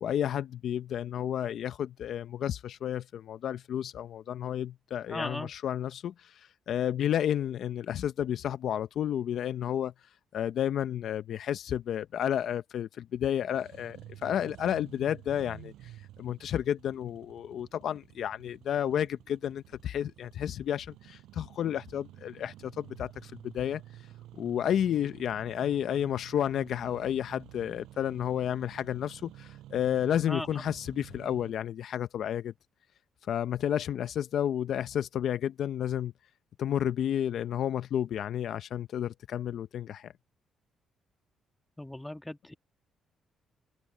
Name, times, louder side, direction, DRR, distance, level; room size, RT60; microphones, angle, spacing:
voice 1, 0.0-9.9 10.3-15.7 16.2-23.8 24.4-32.5 33.3-36.1 36.6-40.1, left 10 dB, 70° left, 0.7 m, -31 dB
voice 2, 5.1-5.5 30.3-30.6 41.8-42.5, left 1 dB, 10° left, 2.1 m, -37 dB
Engine starting, 13.4-31.5, right 14 dB, 85° right, 7.4 m, -51 dB
cardioid pair, 90°, 0 cm